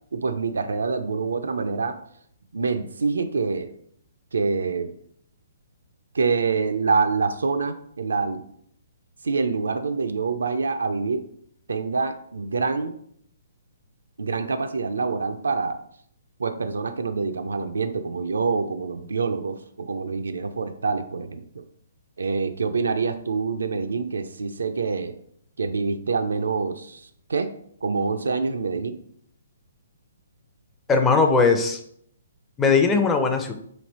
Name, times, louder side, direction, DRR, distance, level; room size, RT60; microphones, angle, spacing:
voice 1, 0.1-2.0 2.5-3.7 4.3-4.9 6.1-8.4 9.2-11.2 11.7-12.9 14.2-15.8 16.4-21.6 22.2-25.1 25.6-27.5 27.8-28.9, right 4 dB, 85° right, 8 dB, 0.4 m, -26 dB
voice 2, 30.9-31.8 32.6-33.5, left 4 dB, 15° left, 5 dB, 0.5 m, -19 dB
3.2 x 2.9 x 4.1 m, 0.67 s
hypercardioid pair, 140°, 0 cm